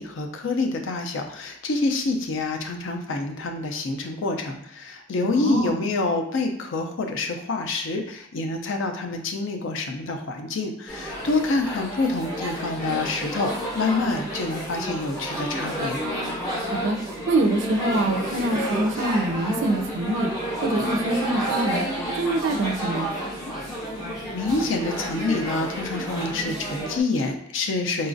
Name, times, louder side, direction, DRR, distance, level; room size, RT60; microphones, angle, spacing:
voice 1, 0.0-16.0 24.3-28.1, left 3 dB, 65° left, 4 dB, 0.4 m, -27 dB
voice 2, 5.2-5.8 16.6-17.0 17.3-20.3 20.6-21.8 22.1-23.1, right 2 dB, 60° right, 4 dB, 0.4 m, -25 dB
sound 1, 10.9-27.0, equal, 15° left, 0.6 m, -30 dB
3.9 x 2.4 x 2.5 m, 0.76 s
head